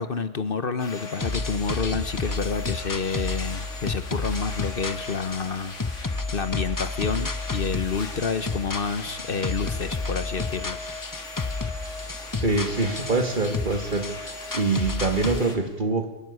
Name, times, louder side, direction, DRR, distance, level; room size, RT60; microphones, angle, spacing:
voice 1, 0.0-10.8, left 5 dB, 50° left, 12 dB, 1.1 m, -29 dB
sound 1, 0.8-15.6, left 3 dB, 80° left, 2.8 m, -39 dB
sound 2, 1.2-15.4, left 3 dB, 25° left, 0.5 m, -31 dB
voice 2, 12.4-14.2 14.5-16.1, right 3 dB, 40° right, 7 dB, 2.1 m, -24 dB
27.0 x 14.0 x 9.7 m, 1.2 s
omnidirectional pair, 1.2 m